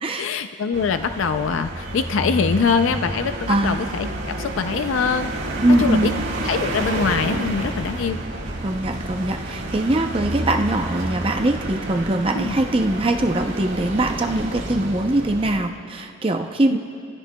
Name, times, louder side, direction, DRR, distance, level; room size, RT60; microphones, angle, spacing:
voice 1, 0.2-4.1 4.4-5.3 5.8-6.1 6.4-8.2 12.3-12.6 16.7-16.8, left 5 dB, 85° left, 9 dB, 0.4 m, -23 dB
sound 1, 0.7-15.6, right 1 dB, 80° right, 1.7 m, -29 dB
voice 2, 3.5-3.8 5.6-6.2 8.6-16.8, right 1 dB, 25° right, 4 dB, 0.6 m, -22 dB
28.5 x 15.0 x 2.3 m, 2.5 s
head